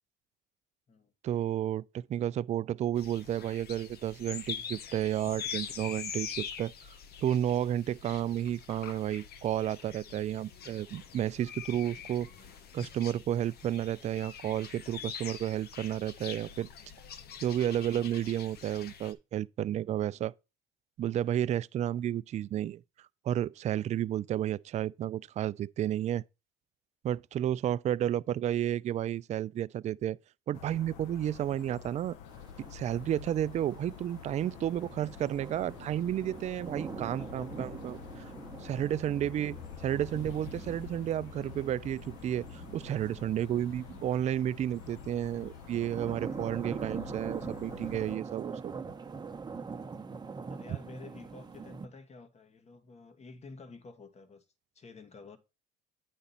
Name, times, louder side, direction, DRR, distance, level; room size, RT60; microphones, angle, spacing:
voice 1, 1.2-6.7 7.2-12.3 12.7-16.7 17.4-20.3 21.0-22.8 23.2-26.2 27.0-30.2 30.5-32.2 32.6-38.2 38.6-48.7, right 11 dB, 35° right, 0.4 m, -32 dB
sound 1, 3.0-19.1, left 7 dB, 55° left, 1.1 m, -44 dB
sound 2, 30.5-48.2, left 8 dB, 80° left, 0.9 m, -48 dB
sound 3, 32.3-51.9, right 5 dB, 20° right, 1.1 m, -44 dB
voice 2, 37.2-37.7 38.1-38.3 38.7-39.0 50.5-54.4 54.7-55.4, left 3 dB, 35° left, 1.6 m, -51 dB
8.8 x 5.0 x 4.2 m
supercardioid pair, 90°, 20 cm